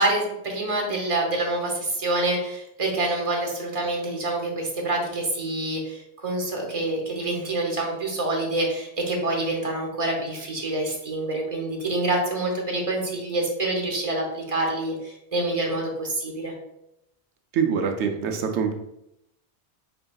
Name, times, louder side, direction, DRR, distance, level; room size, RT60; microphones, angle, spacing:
voice 1, 0.0-16.5, right 2 dB, 35° right, 0 dB, 0.8 m, -26 dB
voice 2, 17.5-18.7, right 6 dB, 80° right, 5 dB, 0.9 m, -24 dB
4.3 x 3.6 x 2.3 m, 0.83 s
omnidirectional pair, 1.2 m